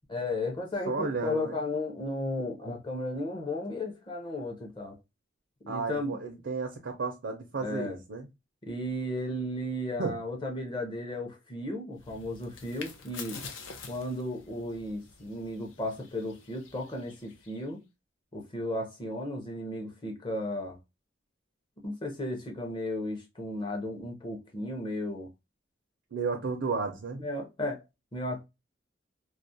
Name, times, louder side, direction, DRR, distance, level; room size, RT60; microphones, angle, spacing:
voice 1, 0.1-5.0 5.6-6.2 7.6-8.0 8.6-13.4 13.9-17.8 18.3-20.8 21.8-25.3 27.2-27.8 28.1-28.4, left 1 dB, 25° left, 0.6 m, -34 dB
voice 2, 0.9-1.5 5.7-8.3 10.0-10.1 26.1-27.2, right 4 dB, 75° right, 0.5 m, -33 dB
sound 1, 12.0-17.7, left 5 dB, 85° left, 0.5 m, -47 dB
2.3 x 2.0 x 2.6 m
head